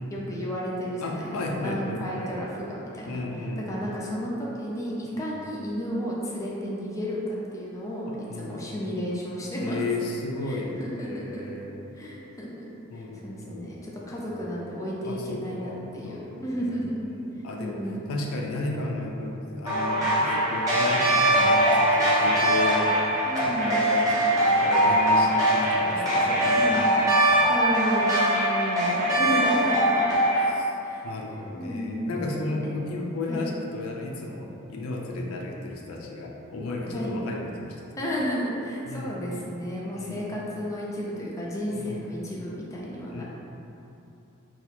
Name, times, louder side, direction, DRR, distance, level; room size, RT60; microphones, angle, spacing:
voice 1, 0.1-3.2 3.6-9.8 10.4-11.4 11.9-12.7 12.9-17.0 17.6-18.2 23.2-23.8 26.5-26.9 27.5-30.0 30.8-31.0 31.6-32.7 33.3-33.4 36.9-37.2 38.0-43.2, equal, 15° left, -5 dB, 0.4 m, -33 dB
voice 2, 1.0-2.4 3.0-3.8 5.2-5.3 8.3-8.7 9.6-11.9 12.9-13.8 14.1-14.3 15.0-16.8 17.1-17.8 18.1-22.9 23.4-26.9 27.3-27.5 29.6-29.9 30.5-30.7 31.0-37.9 38.8-39.2 39.9-40.3 41.7-42.1 43.1-43.2, left 2 dB, 80° left, 0 dB, 0.5 m, -34 dB
sound 1, 19.7-30.4, right 1 dB, 15° right, 0.9 m, -22 dB
2.8 x 2.3 x 4.1 m, 2.9 s
head